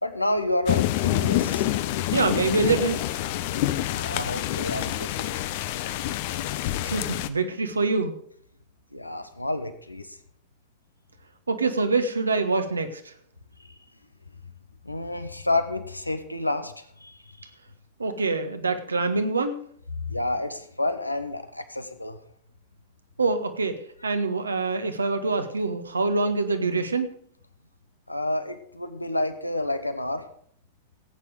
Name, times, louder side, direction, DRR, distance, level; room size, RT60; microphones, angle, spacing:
voice 1, 0.0-1.7 3.9-5.4 8.9-10.2 13.6-13.8 14.8-17.5 19.9-22.2 28.1-30.3, left 2 dB, 85° left, 10 dB, 1.2 m, -29 dB
sound 1, 0.7-7.3, left 14 dB, 50° left, 0.7 m, -27 dB
voice 2, 2.1-3.0 6.8-8.2 11.5-13.1 18.0-19.6 23.2-27.1, right 3 dB, 75° right, 8 dB, 1.5 m, -25 dB
16.5 x 9.0 x 4.8 m, 0.63 s
figure-of-eight pair, 90°, 0 cm